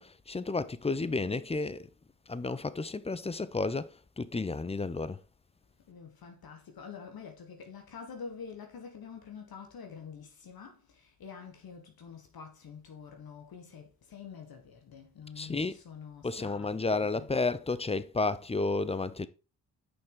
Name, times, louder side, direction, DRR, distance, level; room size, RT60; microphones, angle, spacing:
voice 1, 0.0-1.9 2.3-5.2 15.4-15.8 16.2-19.3, left 3 dB, 15° left, 0.6 m, -32 dB
voice 2, 5.8-17.3, left 6 dB, 60° left, 1.5 m, -47 dB
6.5 x 5.5 x 3.8 m
hypercardioid pair, 40°, 40 cm